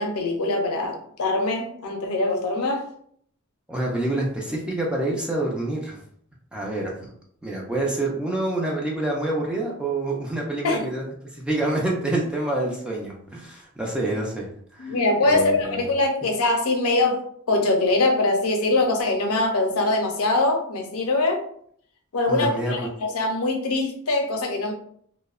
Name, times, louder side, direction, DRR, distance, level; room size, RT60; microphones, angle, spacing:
voice 1, 0.0-2.9 10.6-10.9 14.8-21.5 22.1-24.7, left 2 dB, 80° left, 3 dB, 0.5 m, -23 dB
voice 2, 3.7-6.0 6.5-7.1 7.4-15.0 15.3-15.8 22.3-22.7, right 1 dB, 5° right, -3 dB, 0.3 m, -27 dB
2.6 x 2.0 x 2.3 m, 0.63 s
head